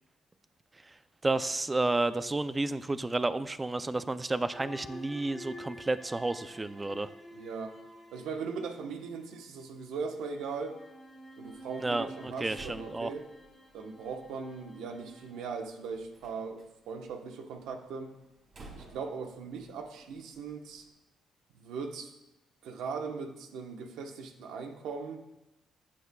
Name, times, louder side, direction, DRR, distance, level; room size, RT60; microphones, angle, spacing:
voice 1, 1.2-7.1 11.8-13.1, right 2 dB, 20° right, 13 dB, 0.5 m, -31 dB
sound 1, 4.5-9.3 10.2-15.4, equal, 5° left, 1.9 m, -50 dB
voice 2, 7.3-7.8 8.1-10.8 11.4-13.3 13.7-18.1 18.7-20.8 21.5-22.1 22.6-25.2, right 5 dB, 85° right, 5 dB, 1.1 m, -39 dB
Slam, 11.4-20.9, right 2 dB, 50° right, 3.0 m, -57 dB
14.5 x 8.7 x 2.3 m, 0.92 s
cardioid pair, 90°, 0 cm